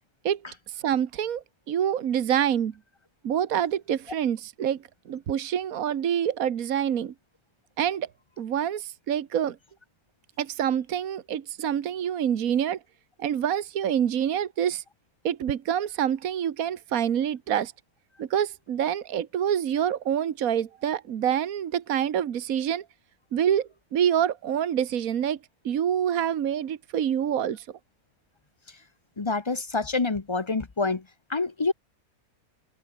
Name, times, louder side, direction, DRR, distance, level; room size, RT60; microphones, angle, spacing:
voice 1, 0.7-2.7 3.2-7.1 7.8-8.1 8.4-9.6 10.4-12.8 13.2-14.8 15.2-17.7 18.2-22.8 23.3-25.4 25.6-27.7, right 9 dB, 75° right, 1.5 m, -26 dB
voice 2, 29.2-31.0 31.3-31.7, left 3 dB, 25° left, 0.7 m, -27 dB
omnidirectional pair, 1.5 m